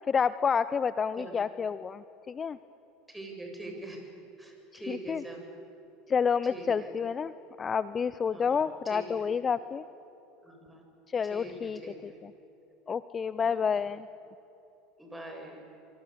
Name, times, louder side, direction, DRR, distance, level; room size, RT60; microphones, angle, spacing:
voice 1, 0.1-2.6 4.7-5.2 6.1-7.3 7.6-9.8 11.1-12.3 12.9-14.1, left 6 dB, 30° left, 15 dB, 0.7 m, -29 dB
voice 2, 3.1-4.0 4.4-5.5 6.5-6.9 8.3-9.2 10.4-10.8 11.3-12.2 13.4-13.6 15.0-15.6, right 2 dB, 10° right, 2 dB, 7.9 m, -43 dB
27.0 x 24.5 x 8.3 m, 2.9 s
hypercardioid pair, 80°, 0 cm